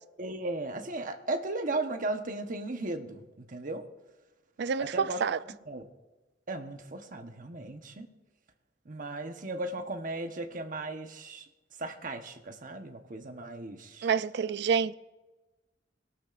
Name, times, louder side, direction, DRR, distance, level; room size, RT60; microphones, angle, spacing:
voice 1, 0.2-3.8 4.8-5.2 5.7-5.8 6.5-8.1 8.8-11.5 11.8-14.1, right 2 dB, 45° right, 1.1 m, -36 dB
voice 2, 4.6-5.4 14.0-14.9, right 6 dB, 65° right, 0.4 m, -28 dB
22.5 x 12.5 x 2.6 m
head